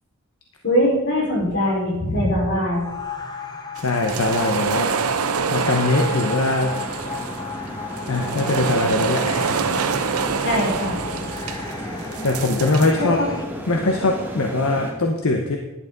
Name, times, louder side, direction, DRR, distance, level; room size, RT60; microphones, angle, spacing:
voice 1, 0.6-2.9 10.4-11.1, equal, 50° left, -5 dB, 4.8 m, -21 dB
sound 1, 2.7-13.5, left 4 dB, 20° left, 0.9 m, -35 dB
voice 2, 3.8-5.0 5.5-6.8 8.1-9.6 9.9-10.2 12.2-13.2 13.7-15.6, left 2 dB, 75° left, 2 dB, 1.0 m, -22 dB
sound 2, 3.8-12.9, right 5 dB, 85° right, 0.8 m, -26 dB
sound 3, 6.7-14.9, equal, 10° right, 1.7 m, -33 dB
11.0 x 11.0 x 4.0 m, 0.98 s
head